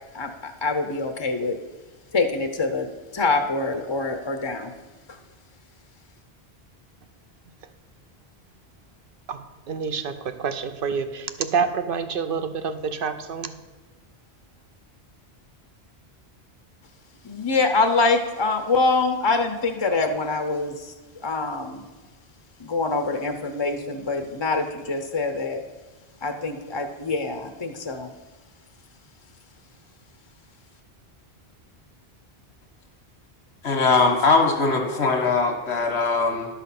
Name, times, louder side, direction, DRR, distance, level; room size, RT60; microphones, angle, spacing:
voice 1, 0.1-1.6 2.1-4.7 17.2-20.9 21.2-21.9 22.6-25.6 26.2-28.1, left 3 dB, 30° left, 0.6 m, -25 dB
voice 2, 9.7-13.5, right 6 dB, 60° right, 0.9 m, -27 dB
voice 3, 33.6-36.5, left 4 dB, 90° left, 1.6 m, -21 dB
11.5 x 5.7 x 5.8 m
omnidirectional pair, 1.1 m